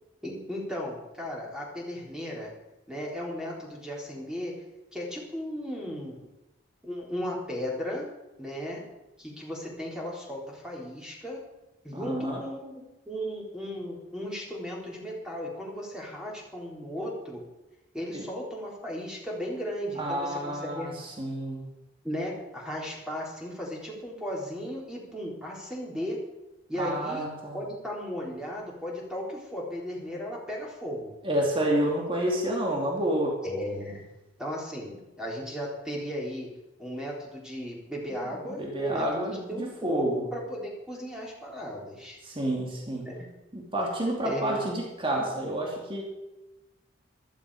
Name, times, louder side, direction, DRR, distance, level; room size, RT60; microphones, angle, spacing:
voice 1, 0.2-2.5 2.9-4.5 4.9-6.2 6.8-8.0 8.4-8.8 9.2-11.4 11.8-17.4 17.9-21.0 22.0-26.2 26.7-27.3 27.5-31.2 33.4-34.0 34.4-36.5 36.8-42.2 43.1-43.3 44.2-44.6, equal, 5° right, -3 dB, 3.8 m, -36 dB
voice 2, 11.9-12.4 18.1-18.2 20.0-21.7 26.8-27.6 31.2-33.4 38.6-40.3 42.2-43.1 43.5-46.0, right 1 dB, 30° right, -1 dB, 2.7 m, -29 dB
15.0 x 13.0 x 4.9 m, 0.99 s
head